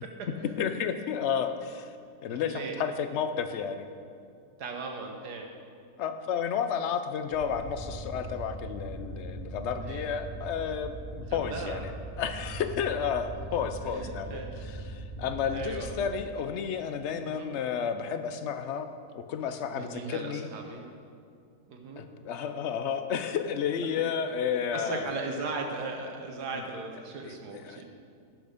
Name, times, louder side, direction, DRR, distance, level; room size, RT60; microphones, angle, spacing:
voice 1, 0.0-0.5 2.4-2.8 4.6-5.5 9.8-10.1 11.3-11.8 13.8-14.5 15.5-16.0 17.2-17.6 19.6-20.8 21.7-22.0 24.7-27.9, right 3 dB, 90° right, 3 dB, 1.8 m, -38 dB
voice 2, 0.6-1.9 2.2-3.9 6.0-11.9 12.2-14.4 14.9-18.9 19.1-20.5 22.0-25.1 26.5-26.6 27.2-27.4 27.6-27.8, left 7 dB, 55° left, 9 dB, 0.8 m, -31 dB
sound 1, 7.3-16.1, right 2 dB, 35° left, 2.6 m, -40 dB
16.5 x 6.4 x 5.1 m, 2.4 s
omnidirectional pair, 1.7 m